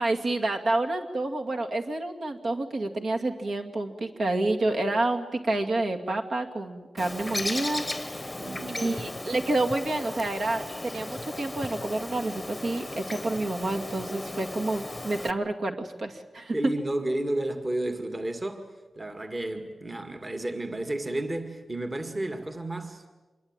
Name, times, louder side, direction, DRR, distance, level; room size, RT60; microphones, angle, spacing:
voice 1, 0.0-8.4 8.7-16.5, right 2 dB, 55° right, 2.3 m, -29 dB
Bird, 7.0-15.3, left 2 dB, 15° left, 1.1 m, -36 dB
voice 2, 8.2-9.0 16.5-18.7 19.0-23.0, right 1 dB, 25° right, 2.0 m, -32 dB
26.5 x 22.0 x 9.0 m
wide cardioid pair, 140°, 0 cm